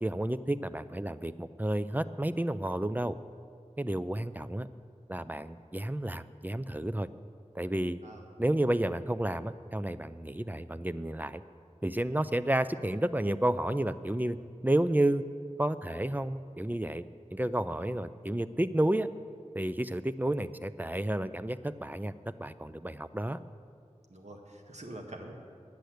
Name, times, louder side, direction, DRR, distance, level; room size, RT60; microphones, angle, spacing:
voice 1, 0.0-3.2 3.8-4.7 5.1-7.1 7.5-8.0 8.4-11.4 11.8-14.4 14.6-15.2 15.6-17.0 17.3-19.1 19.5-22.1 22.4-23.4, right 1 dB, 15° right, 13 dB, 0.4 m, -31 dB
voice 2, 24.1-25.3, right 1 dB, 65° right, 1 dB, 1.5 m, -45 dB
10.5 x 8.3 x 7.9 m, 2.2 s
wide cardioid pair, 40°, 12 cm